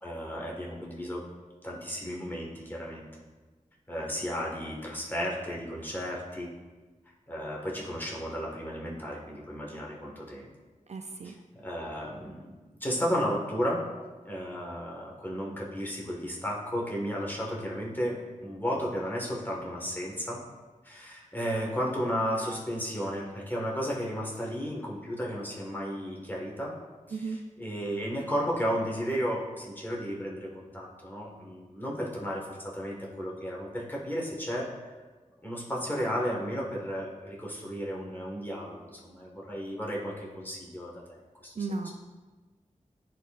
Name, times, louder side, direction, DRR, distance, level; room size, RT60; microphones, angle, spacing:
voice 1, 0.0-1.2 1.6-3.1 3.9-6.5 7.3-10.5 11.2-11.4 11.6-12.5 12.8-13.8 14.2-20.4 20.8-26.7 27.1-34.7 35.4-41.2 41.4-41.5 41.8-41.9, equal, 15° left, -3 dB, 1.5 m, -33 dB
voice 2, 10.9-11.3 27.1-27.4 41.6-41.9, right 3 dB, 55° right, 5 dB, 0.4 m, -34 dB
9.9 x 4.3 x 2.5 m, 1.3 s
wide cardioid pair, 70°, 13 cm